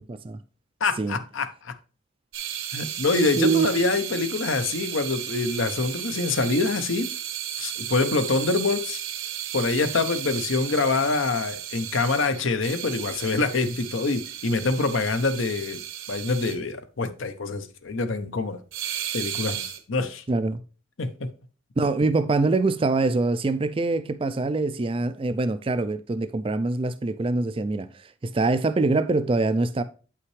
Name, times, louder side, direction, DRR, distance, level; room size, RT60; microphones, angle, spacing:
voice 1, 0.1-0.4 1.0-1.2 3.4-3.8 20.3-20.6 21.8-29.8, right 3 dB, 25° right, 0.3 m, -24 dB
voice 2, 0.8-1.7 2.7-7.1 7.6-9.0 9.5-15.8 16.1-18.6 19.1-20.2 21.0-21.3, left 3 dB, 65° left, 0.7 m, -25 dB
sound 1, 2.3-16.6 18.7-19.8, right 11 dB, 65° right, 0.9 m, -34 dB
8.5 x 5.7 x 3.2 m
head